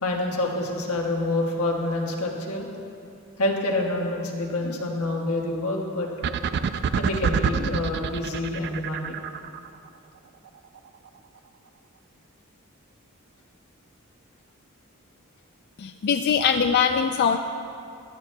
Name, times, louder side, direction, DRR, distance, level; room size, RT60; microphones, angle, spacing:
voice 1, 0.0-2.7 3.4-6.1 6.9-9.2, left 2 dB, 90° left, -1 dB, 1.3 m, -27 dB
sound 1, 6.2-9.7, right 7 dB, 50° right, 0.3 m, -26 dB
voice 2, 15.8-17.4, left 7 dB, 50° left, 6 dB, 0.3 m, -22 dB
15.5 x 11.5 x 2.2 m, 2.6 s
head